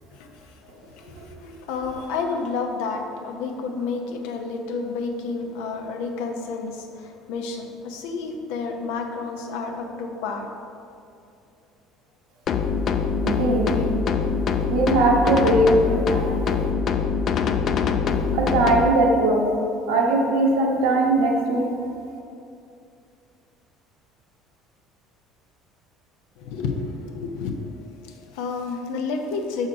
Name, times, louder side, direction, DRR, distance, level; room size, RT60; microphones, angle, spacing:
voice 1, 0.1-10.7 13.7-13.8 26.4-27.7 28.0-29.7, left 4 dB, 80° left, 4 dB, 0.7 m, -30 dB
sound 1, 12.5-18.9, left 6 dB, 45° left, 0.4 m, -23 dB
voice 2, 13.2-13.7 14.7-16.7 18.3-19.4 19.9-21.6, right 2 dB, 90° right, -1 dB, 1.1 m, -20 dB
6.1 x 4.3 x 4.8 m, 2.5 s
supercardioid pair, 110°, 0 cm